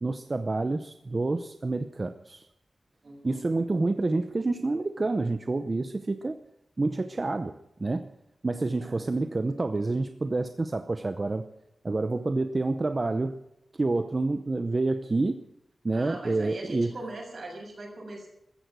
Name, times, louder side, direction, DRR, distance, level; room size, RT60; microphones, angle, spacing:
voice 1, 0.0-2.5 3.2-6.4 6.8-7.5 7.8-8.1 8.4-11.5 11.8-13.4 13.8-15.4 15.8-16.9, right 3 dB, 30° right, 9 dB, 0.7 m, -28 dB
voice 2, 3.0-3.4 8.8-9.1 15.9-18.3, right 2 dB, 50° right, 0 dB, 6.9 m, -40 dB
15.0 x 14.5 x 6.2 m, 0.85 s
wide cardioid pair, 160°, 0 cm